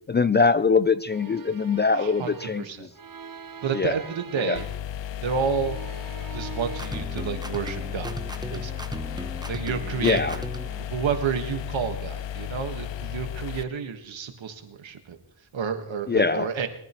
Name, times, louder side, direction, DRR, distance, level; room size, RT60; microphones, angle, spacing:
voice 1, 0.1-2.6 3.7-4.0 4.4-4.6 10.0-10.4 16.1-16.5, left 4 dB, 25° left, 15 dB, 0.4 m, -22 dB
sound 1, 1.1-4.9 5.2-6.8, right 7 dB, 45° right, 0.9 m, -42 dB
voice 2, 1.9-2.9 3.6-4.7 5.2-5.8 6.3-8.1 8.5-8.7 9.5-10.4 10.8-15.2 15.5-16.7, right 6 dB, 70° right, 7 dB, 1.6 m, -30 dB
sound 2, 4.5-13.6, left 10 dB, 65° left, 0.6 m, -34 dB
sound 3, 6.7-10.8, right 2 dB, 10° right, 1.0 m, -37 dB
21.5 x 10.0 x 3.1 m, 0.75 s
cardioid pair, 50°, 48 cm